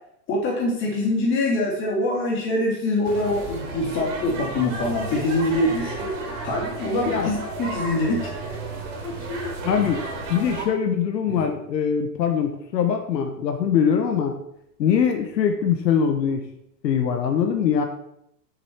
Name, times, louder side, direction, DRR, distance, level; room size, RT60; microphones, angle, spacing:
voice 1, 0.3-6.2 6.4-8.3 9.0-9.9 11.3-11.4, left 1 dB, 25° left, -2 dB, 2.8 m, -24 dB
sound 1, 3.0-10.7, right 3 dB, 45° right, 3.0 m, -33 dB
voice 2, 9.6-10.0 10.3-14.3 14.8-16.4 16.8-17.9, left 7 dB, 80° left, 6 dB, 1.3 m, -22 dB
7.3 x 6.9 x 4.5 m, 0.76 s
supercardioid pair, 160°, 49 cm